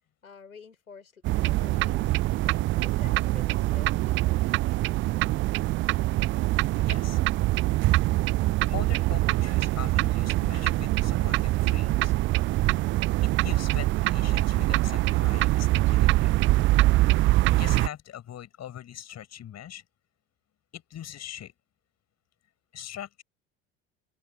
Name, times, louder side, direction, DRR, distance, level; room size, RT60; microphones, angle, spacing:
voice 1, 0.2-2.2 2.8-5.1, left 5 dB, 85° left, 5.8 m, -50 dB
sound 1, 1.2-17.9, right 17 dB, 30° right, 0.4 m, -24 dB
voice 2, 6.7-7.2 8.6-12.1 13.4-16.3 17.5-19.8 20.7-21.5 22.7-23.2, left 10 dB, 40° left, 6.9 m, -41 dB
open air
figure-of-eight pair, 70°, 41 cm